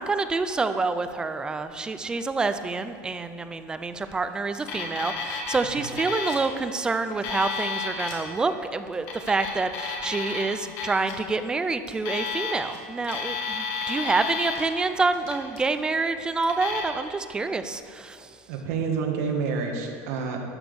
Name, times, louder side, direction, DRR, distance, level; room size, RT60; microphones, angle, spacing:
voice 1, 0.0-18.3, right 3 dB, 10° right, 10 dB, 0.4 m, -27 dB
Alarm, 4.5-5.6 5.8-6.4 7.0-8.2 9.0-10.4 10.8-11.1 11.9-12.8 13.0-14.6 15.1-15.6 16.4-16.8, left 5 dB, 55° left, 2.0 m, -31 dB
voice 2, 18.5-20.4, right 5 dB, 65° right, 2 dB, 1.7 m, -28 dB
12.5 x 6.1 x 7.0 m, 2.5 s
cardioid pair, 175°, 8 cm